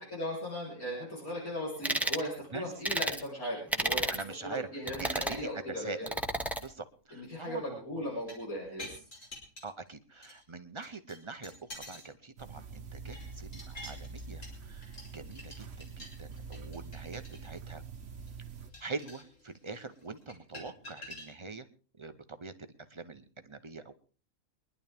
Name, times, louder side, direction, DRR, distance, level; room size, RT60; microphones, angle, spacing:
voice 1, 0.1-6.1 7.1-9.0, equal, 75° left, -4 dB, 4.4 m, -38 dB
sound 1, 1.8-2.2 2.8-3.2 3.7-4.2 4.9-5.4 6.1-6.6, right 1 dB, ahead, 0.9 m, -31 dB
voice 2, 4.1-4.7 5.0-6.2 6.6-8.0 9.6-17.8 18.8-21.7 22.0-23.9, right 3 dB, 25° right, 9 dB, 0.7 m, -43 dB
sound 2, 8.1-9.9 10.2-10.4 10.8-12.1 12.5-21.3, left 1 dB, 55° left, 4.1 m, -49 dB
sound 3, 12.4-18.7, right 5 dB, 55° right, 1.3 m, -45 dB
23.5 x 11.0 x 3.5 m, 0.39 s
omnidirectional pair, 1.5 m